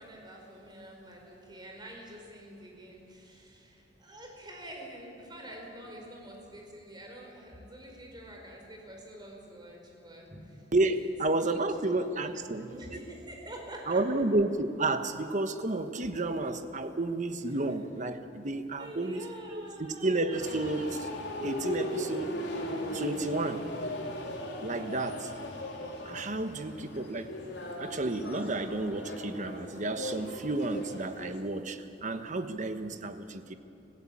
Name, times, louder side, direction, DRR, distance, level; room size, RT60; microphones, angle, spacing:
voice 1, 0.0-10.7 11.4-11.9 12.2-14.0 18.8-20.4, right 1 dB, 25° right, 0 dB, 5.0 m, -47 dB
voice 2, 10.7-13.0 13.9-19.2 19.5-21.1 21.4-22.3 22.9-23.7 24.6-25.3 26.0-27.3 27.8-33.5, right 2 dB, 45° right, 9 dB, 1.2 m, -31 dB
sound 1, 20.3-31.4, left 1 dB, 70° left, 3.4 m, -38 dB
25.5 x 15.5 x 8.6 m, 2.8 s
head